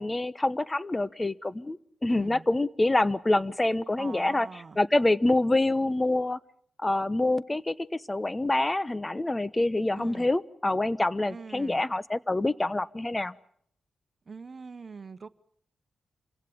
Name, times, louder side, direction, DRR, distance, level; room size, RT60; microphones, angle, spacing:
voice 1, 0.0-4.5 4.8-6.4 6.8-7.8 8.1-13.3, left 2 dB, 25° left, 1.0 m, -26 dB
voice 2, 2.1-2.4 4.0-4.8 9.9-10.3 11.3-11.8 14.3-15.3, right 5 dB, 50° right, 1.1 m, -43 dB
27.5 x 16.5 x 8.8 m
cardioid pair, 55°, 0 cm